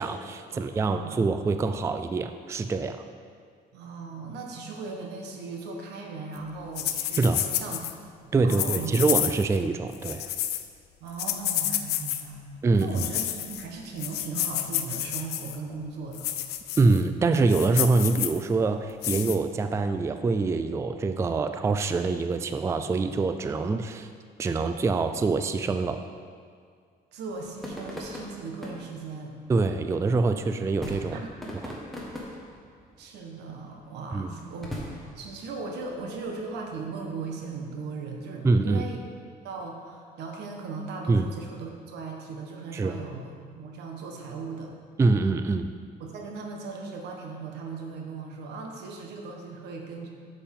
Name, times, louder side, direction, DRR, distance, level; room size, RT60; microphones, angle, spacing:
voice 1, 0.0-3.0 7.2-7.4 8.3-10.3 12.6-12.9 16.8-24.1 24.4-26.0 29.5-31.2 31.6-31.7 34.1-34.3 38.4-38.9 41.1-41.3 42.7-43.0 45.0-45.7, right 3 dB, 15° right, 8 dB, 0.3 m, -25 dB
voice 2, 0.5-1.2 3.7-7.8 8.2-8.9 11.0-16.3 27.1-29.3 31.1-31.5 33.0-34.7 35.1-39.0 39.4-44.7 46.0-50.1, right 4 dB, 85° right, 1 dB, 1.3 m, -38 dB
sound 1, 6.8-7.9 8.5-9.6 9.9-10.6 11.2-12.2 12.8-13.6 14.0-15.6 16.1-17.0 17.4-18.4 19.0-19.4, left 12 dB, 75° left, 0.5 m, -30 dB
sound 2, 27.2-37.6, equal, ahead, 1.5 m, -42 dB
8.5 x 7.1 x 3.7 m, 2.1 s
cardioid pair, 110°, 17 cm